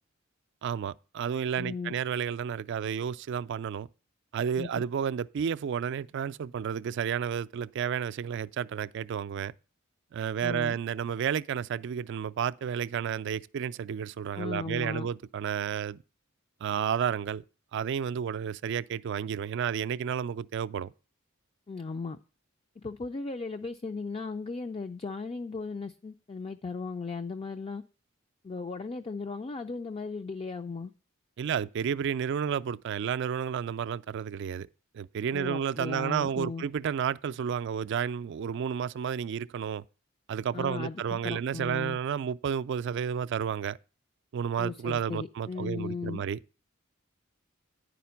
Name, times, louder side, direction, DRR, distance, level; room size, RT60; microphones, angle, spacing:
voice 1, 0.6-3.9 4.3-9.5 10.1-16.0 16.6-17.4 17.7-20.9 31.4-34.7 34.9-39.8 40.3-43.8 44.3-46.4, right 7 dB, 60° right, 0.3 m, -31 dB
voice 2, 1.6-1.9 4.6-4.8 10.4-10.8 14.3-15.1 21.7-22.2 22.8-27.8 28.4-30.9 35.3-36.6 40.5-42.0 44.6-46.2, left 4 dB, 30° left, 0.4 m, -36 dB
10.0 x 5.1 x 5.7 m
head